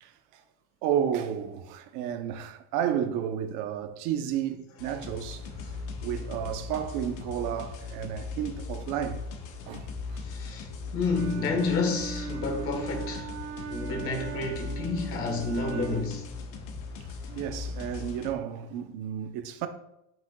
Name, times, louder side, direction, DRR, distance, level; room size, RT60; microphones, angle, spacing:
voice 1, 0.0-0.4 0.8-5.7 6.0-9.3 9.7-10.2 17.3-19.7, right 9 dB, 60° right, 0.8 m, -32 dB
sound 1, 4.8-18.3, left 4 dB, 65° left, 1.1 m, -39 dB
voice 2, 10.2-16.3, left 3 dB, 40° left, 1.4 m, -30 dB
Wind instrument woodwind instrument, 11.1-16.2, right 7 dB, 35° right, 0.6 m, -39 dB
10.0 x 6.1 x 2.3 m
cardioid pair, 160°, 34 cm